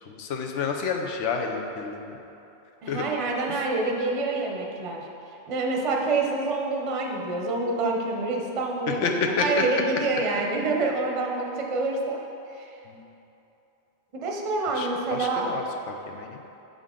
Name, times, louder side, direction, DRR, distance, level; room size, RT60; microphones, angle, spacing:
voice 1, 0.1-2.2 2.9-3.0 3.5-3.6 9.0-9.5 12.9-13.0 14.7-15.6 16.1-16.4, left 5 dB, 90° left, 3 dB, 0.9 m, -29 dB
voice 2, 2.8-5.0 5.5-12.2 12.6-12.7 14.2-15.5, right 3 dB, 35° right, 0 dB, 0.6 m, -27 dB
6.6 x 5.2 x 3.7 m, 2.8 s
omnidirectional pair, 1.2 m